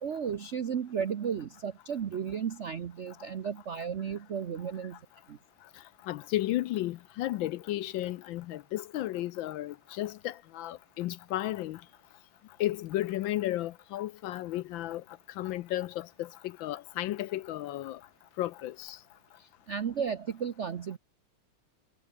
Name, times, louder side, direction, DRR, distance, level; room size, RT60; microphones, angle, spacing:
voice 1, 0.0-5.0 5.3-5.4 19.4-21.0, right 7 dB, 70° right, 0.6 m, -34 dB
voice 2, 6.0-11.8 12.6-15.0 15.4-18.0 18.4-19.0, left 15 dB, 75° left, 1.2 m, -33 dB
omnidirectional pair, 2.4 m